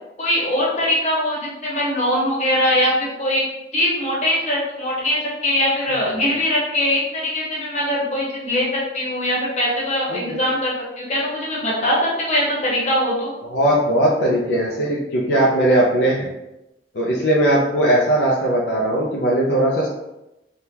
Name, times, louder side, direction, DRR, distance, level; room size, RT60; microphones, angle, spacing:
voice 1, 0.2-3.4 3.7-13.3, left 1 dB, 40° left, -4 dB, 1.0 m, -21 dB
voice 2, 10.1-10.4 13.4-16.3 16.9-19.9, right 1 dB, 70° left, -3 dB, 0.5 m, -19 dB
3.5 x 2.3 x 2.8 m, 0.94 s
head